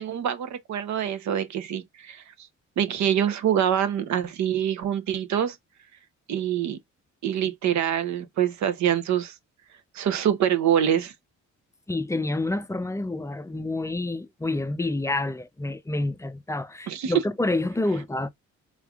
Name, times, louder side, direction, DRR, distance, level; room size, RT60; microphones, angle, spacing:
voice 1, 0.0-2.5 2.8-5.6 6.3-6.8 7.2-9.3 9.9-11.1 16.9-17.1, right 9 dB, 65° right, 0.8 m, -25 dB
voice 2, 11.9-18.3, left 2 dB, 10° left, 0.4 m, -28 dB
3.6 x 3.3 x 2.3 m
cardioid pair, 90°, 30 cm